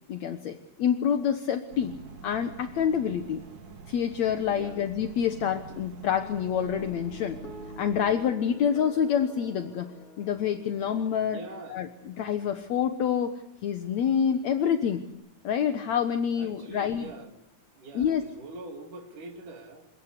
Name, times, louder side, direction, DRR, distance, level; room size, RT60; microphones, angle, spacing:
voice 1, 0.1-1.9 2.2-3.4 3.9-7.4 7.8-9.9 10.2-11.4 11.7-15.0 15.4-17.1 17.9-18.2, left 8 dB, 65° left, 8 dB, 2.5 m, -27 dB
sound 1, 1.7-8.2, right 4 dB, 70° right, 3.9 m, -46 dB
voice 2, 4.5-4.8 11.3-11.9 16.3-17.3 17.7-19.9, right 2 dB, 85° right, 4 dB, 4.6 m, -43 dB
sound 2, 6.0-12.6, left 3 dB, 45° left, 5.2 m, -47 dB
28.5 x 17.0 x 8.3 m, 0.84 s
omnidirectional pair, 3.5 m